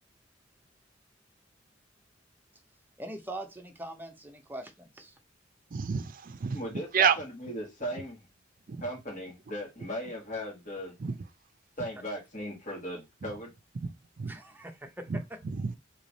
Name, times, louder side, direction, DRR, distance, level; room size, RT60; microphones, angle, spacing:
voice 1, 3.0-5.1 14.2-15.4, right 1 dB, 10° right, 0.7 m, -42 dB
voice 2, 5.7-6.6 6.9-7.2 8.7-8.8 11.0-11.1 13.8-14.3 15.1-15.2 15.6-15.8, right 7 dB, 45° right, 0.5 m, -28 dB
voice 3, 6.5-8.2 8.8-10.9 11.8-13.5, equal, 45° left, 1.7 m, -37 dB
3.3 x 2.9 x 4.0 m
head